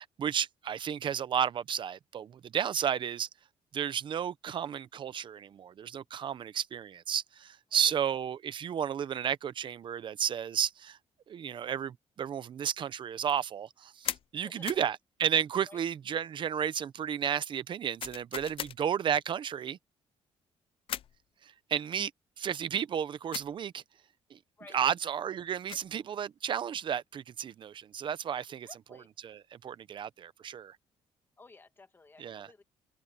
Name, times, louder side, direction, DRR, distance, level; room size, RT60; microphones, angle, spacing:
voice 1, 0.0-3.3 3.7-11.0 11.3-19.8 21.4-22.1 22.4-23.8 24.3-24.4 24.7-28.7 29.2-30.8 32.2-32.5, right 8 dB, 45° right, 0.7 m, -33 dB
sound 1, 14.0-14.3 14.7-14.9 18.0-18.8 20.9-21.2 23.3-23.5 25.4-25.9, left 10 dB, 50° left, 0.5 m, -38 dB
voice 2, 14.4-14.8 15.7-15.8 24.6-24.8 28.6-29.1 31.4-32.6, left 3 dB, 20° left, 2.2 m, -54 dB
cardioid pair, 155°, 12 cm